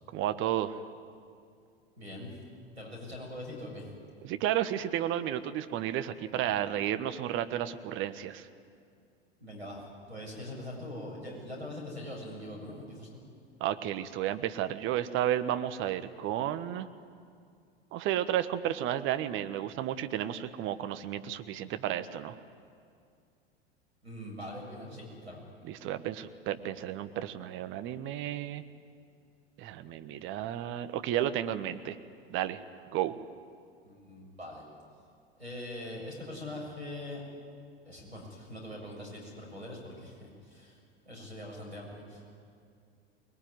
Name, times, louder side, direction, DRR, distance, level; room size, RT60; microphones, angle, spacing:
voice 1, 0.1-0.7 4.2-8.5 13.6-16.9 17.9-22.4 25.6-28.6 29.6-32.0 32.3-32.6 32.9-33.1, right 11 dB, 40° right, 10 dB, 1.3 m, -32 dB
voice 2, 2.0-2.3 2.8-3.9 9.4-9.8 10.1-13.2 24.0-25.4 33.8-34.6 35.4-37.2 37.9-40.8 41.0-42.4, left 1 dB, 85° right, 0 dB, 7.5 m, -42 dB
24.5 x 21.0 x 9.7 m, 2.3 s
figure-of-eight pair, 80°, 31 cm